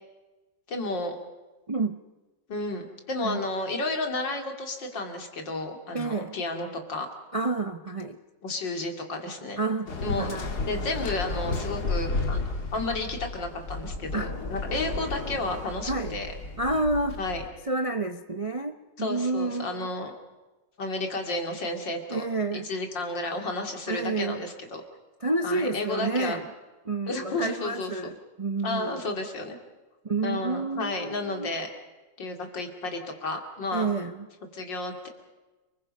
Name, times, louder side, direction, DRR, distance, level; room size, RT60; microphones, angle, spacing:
voice 1, 0.7-1.2 2.5-7.1 8.4-9.6 10.0-10.3 10.7-12.4 12.7-16.3 17.2-17.4 19.0-20.1 20.8-22.2 22.5-24.8 25.4-26.4 27.1-27.9 28.6-29.6 30.2-31.7 32.2-33.9 34.5-35.1, left 2 dB, 80° left, 4 dB, 3.4 m, -32 dB
voice 2, 1.7-2.0 3.2-3.4 5.9-6.4 7.3-8.2 9.6-10.6 14.1-14.3 15.8-16.2 16.6-17.2 17.6-19.9 22.1-22.7 23.9-24.5 25.2-26.5 26.8-29.1 30.0-31.5 33.7-34.3, right 3 dB, 35° right, 7 dB, 0.5 m, -29 dB
Waves surf, 9.9-17.5, left 3 dB, 60° left, 2.5 m, -33 dB
30.0 x 21.5 x 5.4 m, 1.2 s
omnidirectional pair, 2.0 m